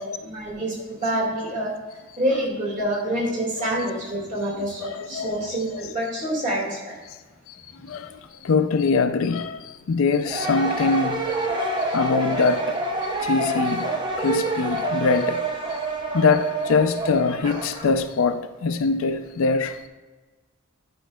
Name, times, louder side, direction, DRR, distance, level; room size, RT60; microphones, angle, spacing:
voice 1, 0.0-1.7 2.2-6.9, right 1 dB, 35° right, 2.0 m, -27 dB
voice 2, 4.8-5.9 7.9-8.1 8.4-11.2 11.5-12.8 13.2-13.9 14.2-15.4 16.1-19.8, left 4 dB, 70° left, 0.4 m, -23 dB
sound 1, 10.2-17.9, right 2 dB, 20° right, 0.7 m, -27 dB
11.0 x 5.2 x 2.2 m
head